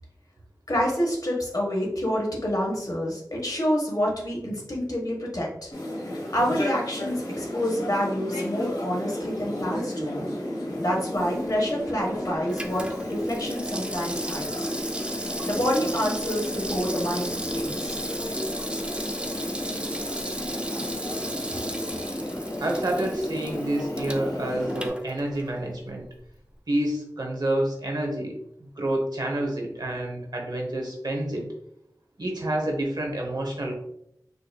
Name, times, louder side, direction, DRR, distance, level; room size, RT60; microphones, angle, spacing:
voice 1, 0.7-5.7 6.3-10.3 10.8-14.7 15.1-18.0, equal, 60° left, -2 dB, 1.2 m, -28 dB
sound 1, 5.7-24.9, left 1 dB, 80° left, 0.9 m, -33 dB
Water tap faucet / Sink (filling or washing), 11.4-25.7 26.0-26.1, right 1 dB, 15° right, 0.5 m, -36 dB
voice 2, 22.6-26.0 26.7-31.5 32.2-33.8, right 1 dB, 70° right, 0 dB, 0.9 m, -28 dB
4.9 x 2.6 x 2.2 m, 0.76 s
wide cardioid pair, 50°, 7 cm